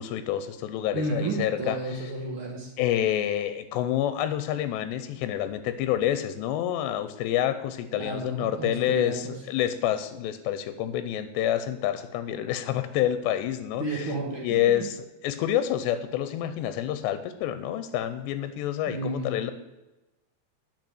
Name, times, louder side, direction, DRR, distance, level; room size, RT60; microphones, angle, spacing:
voice 1, 0.0-1.8 2.8-13.8 14.4-19.5, left 11 dB, 90° left, 11 dB, 2.9 m, -28 dB
voice 2, 0.9-2.7 7.9-9.3 13.8-14.9 18.9-19.3, right 2 dB, 90° right, -2 dB, 1.1 m, -32 dB
9.2 x 5.9 x 7.8 m, 1.0 s
omnidirectional pair, 4.9 m